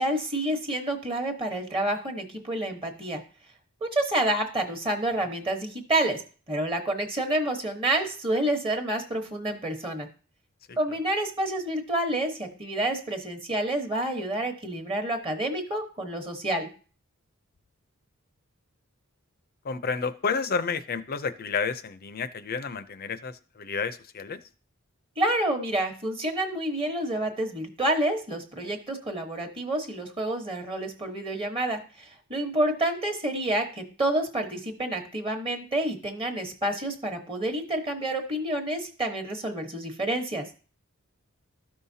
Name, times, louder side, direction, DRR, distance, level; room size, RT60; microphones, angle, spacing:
voice 1, 0.0-3.2 3.8-6.2 6.5-10.1 10.8-16.7 25.2-40.5, right 1 dB, 25° right, 5 dB, 1.1 m, -28 dB
voice 2, 19.6-24.4, left 5 dB, 45° left, 12 dB, 0.5 m, -30 dB
13.0 x 5.6 x 2.7 m, 0.38 s
head